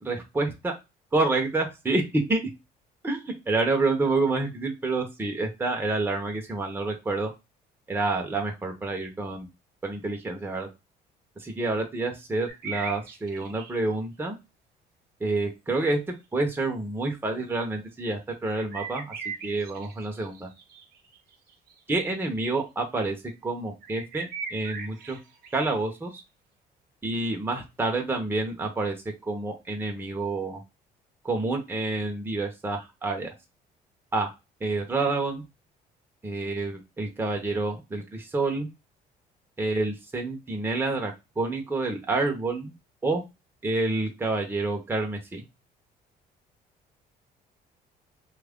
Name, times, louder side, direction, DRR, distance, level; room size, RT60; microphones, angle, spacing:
voice 1, 0.0-0.7 1.1-2.4 3.0-3.2 3.5-7.3 7.9-9.5 9.8-10.7 11.4-14.4 15.2-19.1 19.4-20.5 21.9-23.2 23.4-25.2 25.5-26.2 27.0-29.0 29.2-30.6 31.2-33.3 34.1-34.3 34.6-35.4 36.2-38.7 39.6-42.7 43.0-43.2 43.6-45.4, right 3 dB, 15° right, 2 dB, 0.8 m, -28 dB
sound 1, 12.5-13.8 16.1-16.2 18.4-22.4 22.8-22.9 23.8-25.7, right 5 dB, 65° right, 0.8 m, -39 dB
3.0 x 2.4 x 3.5 m, 0.24 s
cardioid pair, 110°, 17 cm